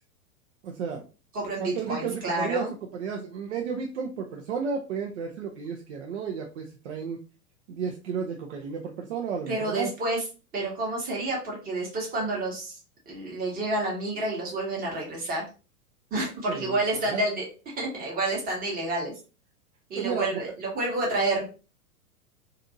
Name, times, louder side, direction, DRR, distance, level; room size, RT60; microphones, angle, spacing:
voice 1, 0.6-1.0 1.6-2.6 2.9-7.2 7.7-9.9 16.5-16.8 17.0-17.2 20.0-20.5, right 6 dB, 50° right, 1 dB, 0.5 m, -32 dB
voice 2, 1.3-2.7 9.5-10.2 10.5-12.8 13.1-15.5 16.1-17.5 17.8-19.1 19.9-21.5, right 2 dB, 20° right, -2 dB, 1.0 m, -29 dB
2.6 x 2.5 x 2.6 m, 0.35 s
figure-of-eight pair, 95°, 44 cm